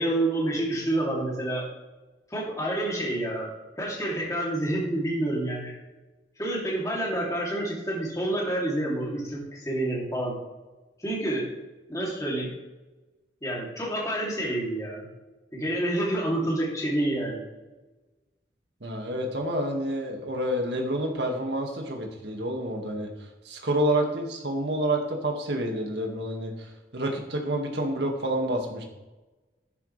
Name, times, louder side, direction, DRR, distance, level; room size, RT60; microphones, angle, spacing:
voice 1, 0.0-1.7 2.3-3.5 3.8-5.7 6.4-10.3 11.0-11.5 11.9-12.5 13.4-15.1 15.5-17.4, right 1 dB, 20° left, -4 dB, 3.0 m, -28 dB
voice 2, 18.8-23.1 23.5-28.8, right 1 dB, 80° right, 2 dB, 2.0 m, -28 dB
11.5 x 10.5 x 3.4 m, 1.1 s
head